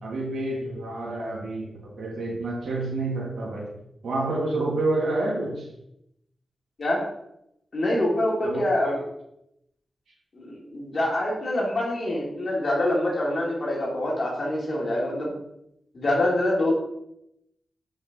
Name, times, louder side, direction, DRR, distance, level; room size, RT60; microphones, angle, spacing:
voice 1, 0.0-3.7 4.0-5.7 8.4-9.0, right 2 dB, 75° right, -3 dB, 2.2 m, -29 dB
voice 2, 7.7-9.0 10.3-15.3 15.9-16.7, left 1 dB, 50° left, -3 dB, 2.5 m, -25 dB
7.1 x 5.3 x 3.7 m, 0.80 s
wide cardioid pair, 100°, 0 cm